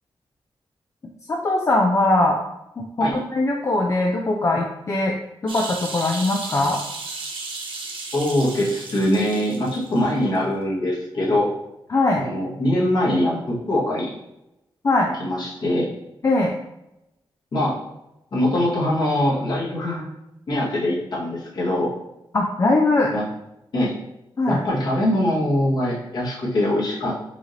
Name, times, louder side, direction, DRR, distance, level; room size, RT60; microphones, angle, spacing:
voice 1, 1.3-2.4 2.8-5.1 5.4-6.8 11.9-12.2 14.8-15.1 16.2-16.5 22.3-23.1 24.4-24.6, left 2 dB, 35° left, 0 dB, 0.4 m, -21 dB
sound 1, 5.5-10.0 10.4-10.5, right 3 dB, 70° right, 0.7 m, -34 dB
voice 2, 8.1-11.5 12.2-14.1 15.2-15.9 17.5-17.8 18.3-20.0 20.5-21.9 23.1-23.2 23.7-23.9 24.5-27.2, left 1 dB, 55° left, -7 dB, 1.6 m, -22 dB
4.8 x 2.7 x 3.2 m, 0.88 s
wide cardioid pair, 155°, 9 cm